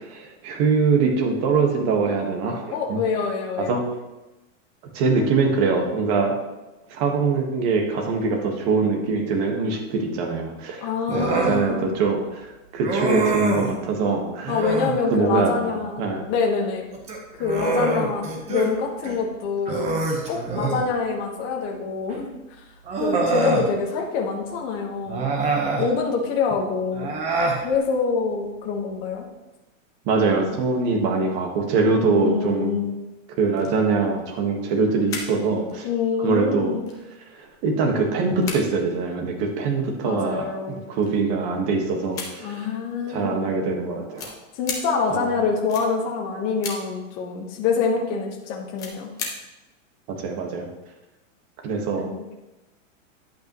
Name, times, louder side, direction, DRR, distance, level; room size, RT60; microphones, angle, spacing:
voice 1, 0.0-3.0 3.6-3.9 4.9-6.3 6.9-14.5 15.1-16.2 30.0-32.8 33.4-35.9 36.2-36.8 37.3-42.5 43.1-44.3 45.1-45.3 50.2-50.7 51.6-52.1, right 4 dB, 35° right, 2 dB, 1.5 m, -23 dB
voice 2, 2.7-3.8 10.8-11.9 14.5-16.0 16.3-16.9 17.4-19.9 20.3-22.3 23.0-25.3 25.8-27.1 27.6-29.3 31.9-33.0 35.8-36.9 40.0-40.8 42.4-43.4 44.5-49.1 52.0-52.2, left 5 dB, 30° left, 1 dB, 1.3 m, -26 dB
Human voice, 11.1-11.6 12.8-13.7 14.5-15.0 16.9-18.7 19.0-19.2 19.7-20.9 22.1-22.2 22.9-23.7 25.1-25.9 26.9-27.6, right 3 dB, 15° right, 1.0 m, -24 dB
sound 1, 33.5-33.9 34.2-35.3 35.7-35.8 36.4-36.5 36.8-37.9 38.2-39.3 40.1-40.2 40.7-41.4 42.0-42.7 43.6-43.7 44.1-44.8 45.7-45.9 46.6-46.8 48.6-49.3 49.6-49.7, left 5 dB, 10° left, 0.4 m, -35 dB
10.0 x 8.3 x 3.0 m, 1.0 s
supercardioid pair, 165°, 39 cm